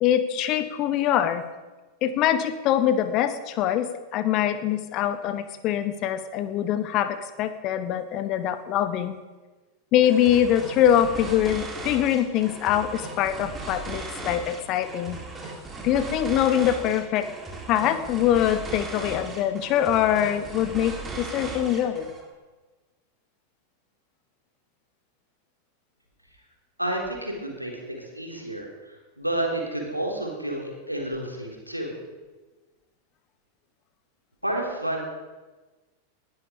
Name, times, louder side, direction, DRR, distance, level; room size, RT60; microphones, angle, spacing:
voice 1, 0.0-1.4 2.0-9.2 9.9-15.2 15.8-17.3 17.7-22.1, left 10 dB, 40° left, 11 dB, 1.3 m, -23 dB
sound 1, 10.0-22.3, right 3 dB, 15° right, 3.6 m, -37 dB
voice 2, 26.8-32.0 34.4-35.0, right 1 dB, 90° right, 0 dB, 3.6 m, -30 dB
20.0 x 12.5 x 5.1 m, 1.3 s
figure-of-eight pair, 90°, 0 cm